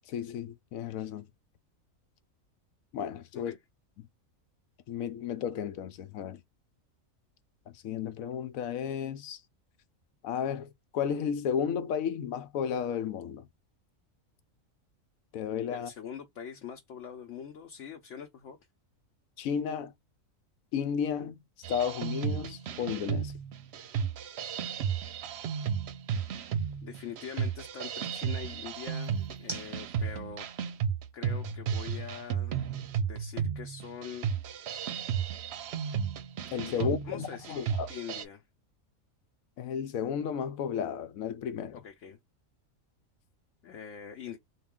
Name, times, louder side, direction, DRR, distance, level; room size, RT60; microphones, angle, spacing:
voice 1, 0.1-1.3 2.9-3.5 4.0-4.1 4.9-6.4 7.8-9.4 10.2-13.5 15.3-15.9 19.4-19.9 20.7-21.4 21.7-23.3 36.5-37.9 39.6-41.8, left 8 dB, 85° left, 1.1 m, -33 dB
voice 2, 15.7-18.6 26.8-30.5 31.1-32.6 33.0-34.3 36.7-38.4 41.7-42.2 43.6-44.4, left 7 dB, 65° left, 1.0 m, -43 dB
sound 1, 19.7-33.9, right 2 dB, 25° right, 0.8 m, -55 dB
sound 2, 21.6-38.2, right 7 dB, 60° right, 0.8 m, -34 dB
3.7 x 2.4 x 3.6 m
omnidirectional pair, 1.4 m